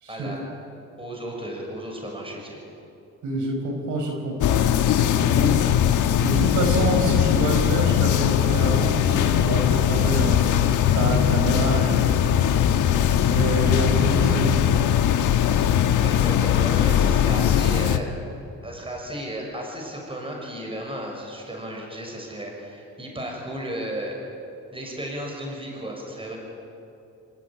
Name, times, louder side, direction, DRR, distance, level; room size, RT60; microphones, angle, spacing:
voice 1, 0.1-0.4 1.0-2.6 16.0-18.1 18.6-24.2 24.7-26.4, right 1 dB, 20° right, 0 dB, 6.5 m, -34 dB
voice 2, 3.2-4.6 5.1-5.6 5.9-10.5 10.9-12.2 13.3-14.6, right 2 dB, 80° right, 2 dB, 5.4 m, -27 dB
sound 1, 4.4-18.0, left 9 dB, 80° left, 1.4 m, -20 dB
27.0 x 18.5 x 9.0 m, 2.7 s
cardioid pair, 90°, 30 cm